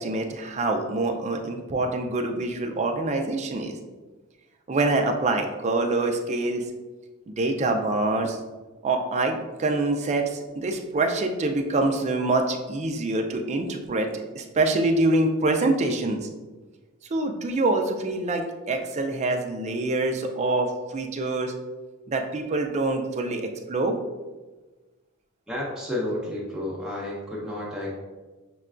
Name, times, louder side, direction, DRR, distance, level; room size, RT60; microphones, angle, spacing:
voice 1, 0.0-3.8 4.7-6.7 7.4-8.4 8.8-16.3 17.1-21.5 22.1-24.0, right 2 dB, 30° right, 4 dB, 0.4 m, -25 dB
voice 2, 25.5-27.9, left 1 dB, 5° right, -5 dB, 0.9 m, -31 dB
6.5 x 2.2 x 2.4 m, 1.2 s
head